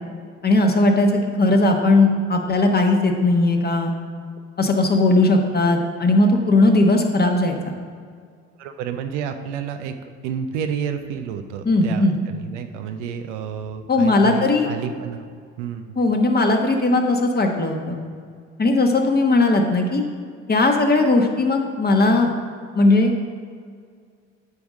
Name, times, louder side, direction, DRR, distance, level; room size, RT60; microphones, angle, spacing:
voice 1, 0.4-3.9 4.6-7.7 11.7-12.2 13.9-14.7 16.0-18.0 18.6-20.0 20.5-22.3 22.7-23.1, left 2 dB, 25° left, 3 dB, 1.2 m, -18 dB
voice 2, 8.6-10.0 10.2-15.3 15.6-16.0, right 7 dB, 85° right, 7 dB, 0.6 m, -30 dB
9.5 x 3.5 x 6.3 m, 2.1 s
hypercardioid pair, 60°, 35 cm